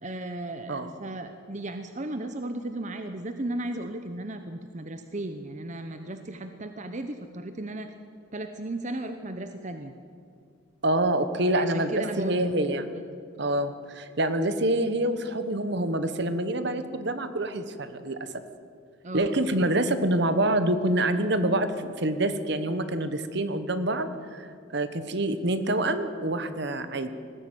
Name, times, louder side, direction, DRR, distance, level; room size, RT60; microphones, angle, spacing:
voice 1, 0.0-7.9 8.3-9.9 11.5-12.5 12.9-13.1 19.0-19.3, right 1 dB, 35° right, 8 dB, 0.9 m, -35 dB
voice 2, 10.8-12.9 13.4-18.3 19.1-27.1, right 1 dB, 60° right, 10 dB, 1.3 m, -26 dB
19.5 x 15.0 x 9.2 m, 2.3 s
head